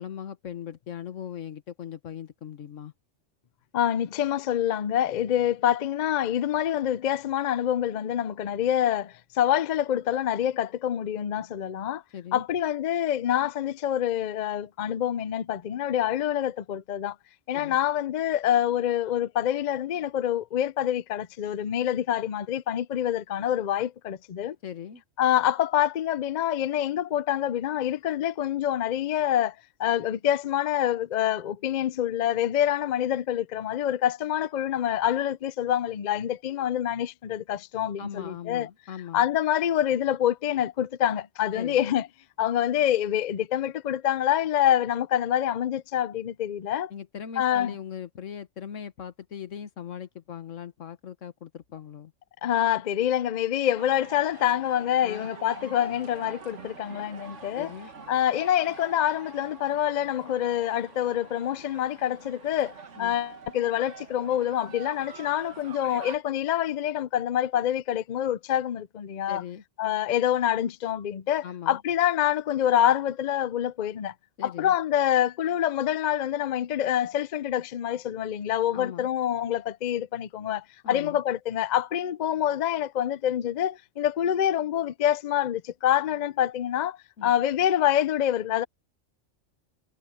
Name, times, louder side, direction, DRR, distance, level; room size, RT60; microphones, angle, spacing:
voice 1, 0.0-2.9 12.1-12.4 17.5-17.8 24.6-25.0 38.0-39.2 41.5-41.8 46.9-52.1 55.0-55.3 55.6-55.7 57.6-57.9 63.0-63.2 69.3-69.6 71.4-71.8 74.4-74.7 78.7-79.1 80.8-81.2 87.2-87.3, left 9 dB, 80° left, 1.5 m, -39 dB
voice 2, 3.7-12.0 12.3-17.2 17.5-24.6 25.2-29.5 29.8-38.7 39.1-42.1 42.4-46.9 47.4-47.8 52.4-57.7 58.1-69.4 69.8-74.1 74.4-88.6, left 11 dB, 55° left, 0.5 m, -26 dB
sound 1, 53.8-66.2, right 5 dB, 70° right, 1.8 m, -46 dB
omnidirectional pair, 1.3 m